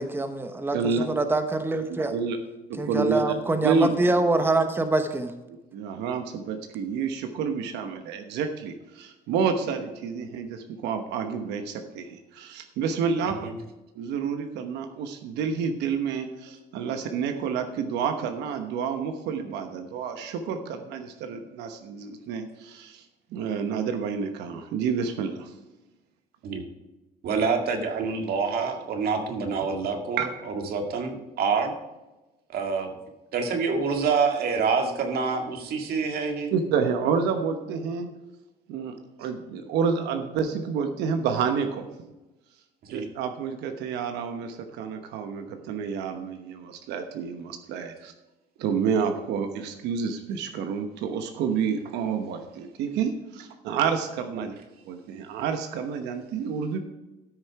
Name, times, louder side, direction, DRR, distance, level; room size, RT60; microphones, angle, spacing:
voice 1, 0.0-2.1 2.8-5.3, right 2 dB, 15° right, 8 dB, 1.0 m, -25 dB
voice 2, 0.7-1.1 1.9-2.4 2.7-3.3 3.6-3.9 5.7-13.4 13.9-23.0 23.3-25.5 30.2-30.3 36.5-38.1 38.7-41.8 42.9-48.1 48.6-54.5 54.8-56.8, right 6 dB, 90° right, 6 dB, 1.1 m, -29 dB
voice 3, 27.2-30.3 30.7-31.7 32.5-32.9 33.3-36.5 42.8-43.1, right 5 dB, 65° right, 4 dB, 2.0 m, -26 dB
13.5 x 6.5 x 4.7 m, 1.0 s
cardioid pair, 110°, 17 cm